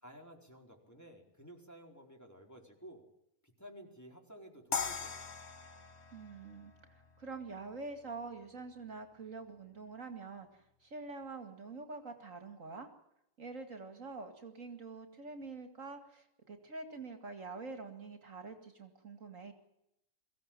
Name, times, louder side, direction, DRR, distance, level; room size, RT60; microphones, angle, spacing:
voice 1, 0.0-3.0 3.6-5.2, equal, 10° left, 2 dB, 4.6 m, -53 dB
sound 1, 4.7-7.8, left 6 dB, 50° left, 1.5 m, -41 dB
voice 2, 6.1-12.9 13.4-19.5, right 3 dB, 60° right, 7 dB, 2.6 m, -46 dB
24.0 x 16.5 x 9.0 m, 0.84 s
omnidirectional pair, 1.6 m